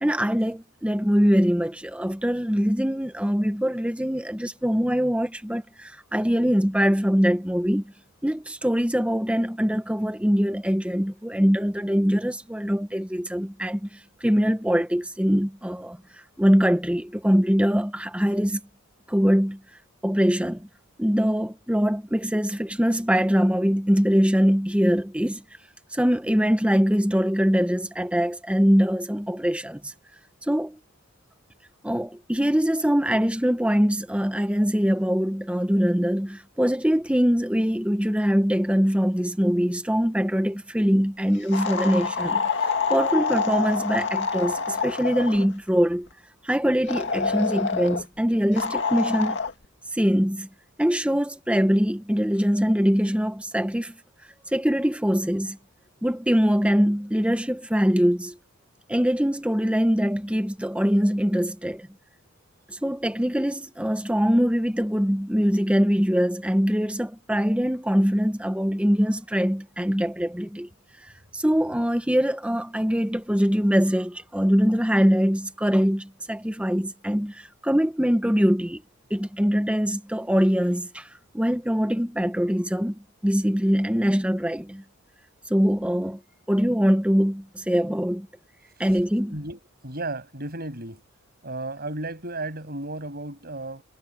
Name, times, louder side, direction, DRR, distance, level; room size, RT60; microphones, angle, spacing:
voice 1, 0.0-7.9 8.2-16.0 16.4-18.6 19.1-19.6 20.0-20.7 21.0-25.4 25.9-29.9 30.5-30.8 31.8-42.5 42.9-46.1 46.4-49.4 49.9-50.5 50.8-53.9 54.5-55.6 56.0-58.4 58.9-61.9 62.7-70.7 71.3-78.8 79.1-81.1 81.3-84.8 85.5-86.2 86.5-88.3 88.8-89.4, equal, 5° right, 1.0 m, -23 dB
sound 1, 41.5-45.5 46.9-48.0 48.6-49.5, left 5 dB, 55° left, 2.2 m, -26 dB
voice 2, 89.3-91.0 91.4-93.8, right 2 dB, 45° right, 7.8 m, -34 dB
head